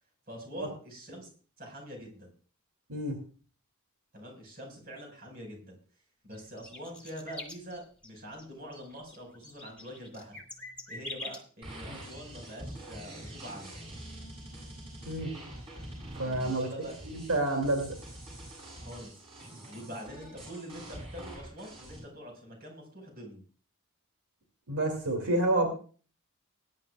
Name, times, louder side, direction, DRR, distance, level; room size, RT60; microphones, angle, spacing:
voice 1, 0.3-1.3 1.6-2.3 4.1-5.8 6.2-10.4 10.9-13.8 16.2-17.0 18.8-19.3 19.6-23.4, equal, 45° right, 1 dB, 5.1 m, -45 dB
sound 1, 6.3-8.1 8.4-8.5 8.7-11.4, left 2 dB, 5° left, 2.4 m, -44 dB
sound 2, 11.6-22.0, right 1 dB, 25° right, 8.0 m, -45 dB
voice 2, 16.2-16.7 17.0-18.0 24.7-25.7, right 2 dB, 85° right, 3 dB, 2.6 m, -29 dB
21.0 x 10.5 x 2.4 m, 0.40 s
head